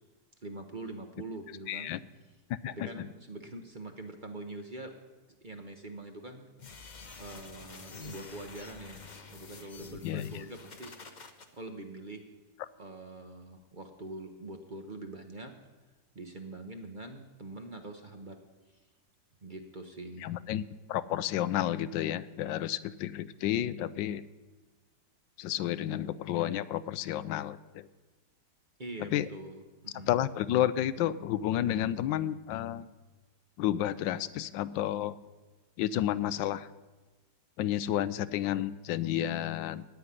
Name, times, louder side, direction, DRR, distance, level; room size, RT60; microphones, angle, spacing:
voice 1, 0.4-2.0 2.7-4.9 5.4-6.4 7.2-9.0 9.3-10.9 11.5-12.2 12.8-15.5 16.1-18.4 19.4-20.4 28.8-30.1, right 2 dB, 30° right, 4 dB, 1.0 m, -44 dB
voice 2, 1.7-2.0 2.5-3.1 10.0-10.4 20.2-20.6 20.9-24.2 25.4-27.9 29.0-29.3 30.0-32.9 33.6-35.1 35.8-36.7 37.6-39.8, left 12 dB, 85° left, 16 dB, 1.3 m, -31 dB
sound 1, 6.6-11.5, left 4 dB, 35° left, 0.8 m, -48 dB
16.0 x 5.8 x 9.7 m, 1.2 s
omnidirectional pair, 2.0 m